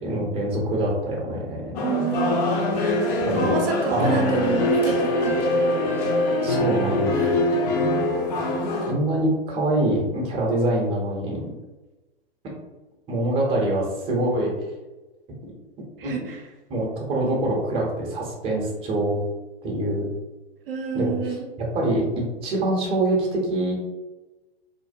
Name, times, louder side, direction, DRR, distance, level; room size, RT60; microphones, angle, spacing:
voice 1, 0.0-1.8 3.3-3.5 3.9-4.3 6.4-7.3 8.8-11.5 13.1-14.5 16.0-16.3 16.7-19.2 19.6-20.1 20.9-22.1 22.4-23.7, right 1 dB, 20° right, -2 dB, 0.6 m, -25 dB
sound 1, 1.8-8.9, left 1 dB, 40° left, 0.5 m, -23 dB
voice 2, 1.8-2.6 3.3-5.3 16.0-16.4 20.7-21.5, right 6 dB, 60° right, 1 dB, 0.6 m, -28 dB
2.5 x 2.1 x 2.5 m, 1.1 s
figure-of-eight pair, 105°, 32 cm